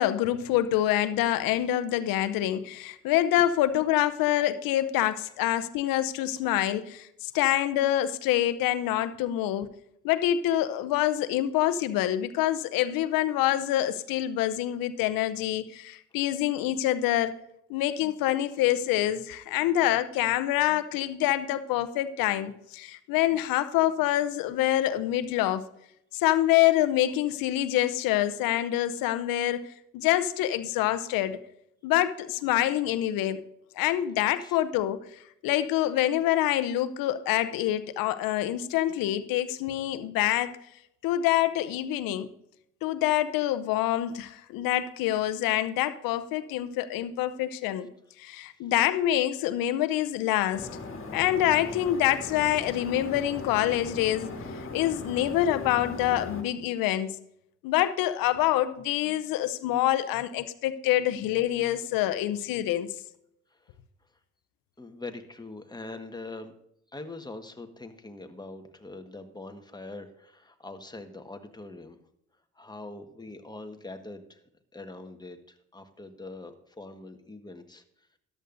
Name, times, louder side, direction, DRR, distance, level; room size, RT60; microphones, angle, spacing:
voice 1, 0.0-9.7 10.0-17.3 17.7-25.7 26.1-31.4 31.8-33.4 33.8-35.0 35.4-40.6 41.0-42.3 42.8-47.9 48.2-50.7 51.1-54.3 54.7-57.2 57.6-62.9, left 13 dB, 75° left, 13 dB, 0.7 m, -26 dB
sound 1, 50.5-56.4, left 3 dB, 35° left, 2.1 m, -39 dB
voice 2, 64.8-66.5 66.9-72.0 72.5-74.4 74.7-77.8, left 2 dB, 10° left, 6 dB, 1.4 m, -43 dB
13.5 x 11.0 x 2.6 m, 0.76 s
hypercardioid pair, 55°, 35 cm